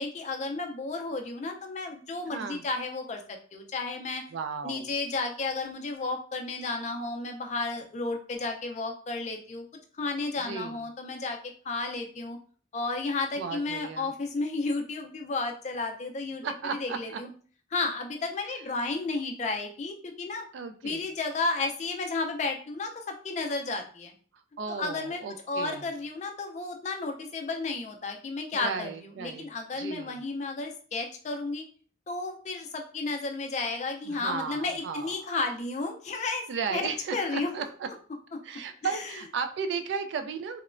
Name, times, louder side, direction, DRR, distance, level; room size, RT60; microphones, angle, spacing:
voice 1, 0.0-4.2 4.6-9.7 10.0-11.4 11.6-12.4 12.7-17.3 17.7-20.5 20.8-24.1 24.7-25.2 25.5-28.9 29.2-31.7 32.1-36.5 36.7-37.5 38.3-38.4 39.0-39.1, left 3 dB, 35° left, 4 dB, 0.3 m, -32 dB
voice 2, 2.3-2.6 4.3-4.9 10.4-10.8 13.4-14.1 16.4-17.2 20.5-21.0 24.6-25.9 28.5-29.4 29.8-30.2 34.0-35.3 36.5-37.9 38.4-40.6, right 5 dB, 75° right, 8 dB, 0.3 m, -35 dB
2.9 x 2.1 x 2.4 m, 0.43 s
head